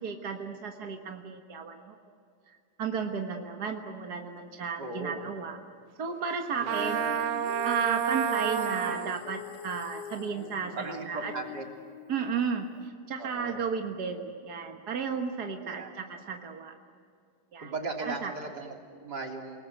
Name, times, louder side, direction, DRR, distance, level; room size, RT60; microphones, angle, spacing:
voice 1, 0.0-2.0 2.5-5.6 6.0-7.3 7.6-11.3 12.1-16.7 17.5-17.7 18.0-18.3, right 6 dB, 50° right, 3 dB, 1.2 m, -34 dB
voice 2, 4.8-5.2 6.6-7.1 10.4-11.7 13.2-13.6 15.6-15.9 17.6-19.6, right 3 dB, 30° right, 1 dB, 3.4 m, -38 dB
Trumpet, 6.6-9.2, right 11 dB, 80° right, 2.4 m, -29 dB
Female singing, 6.7-12.9, left 10 dB, 70° left, 2.5 m, -42 dB
29.5 x 19.5 x 7.8 m, 2.3 s
omnidirectional pair, 3.7 m